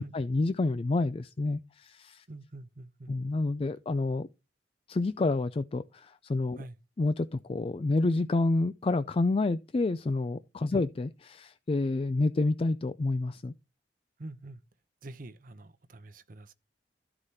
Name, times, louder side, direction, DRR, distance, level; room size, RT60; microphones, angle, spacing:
voice 1, 0.0-2.2 3.1-4.3 4.9-6.6 7.0-13.5, left 2 dB, 30° left, 0.4 m, -29 dB
voice 2, 2.3-3.1 6.5-6.8 10.7-10.8 14.2-14.6 15.0-16.5, right 2 dB, 50° right, 0.8 m, -45 dB
13.0 x 4.9 x 4.2 m
head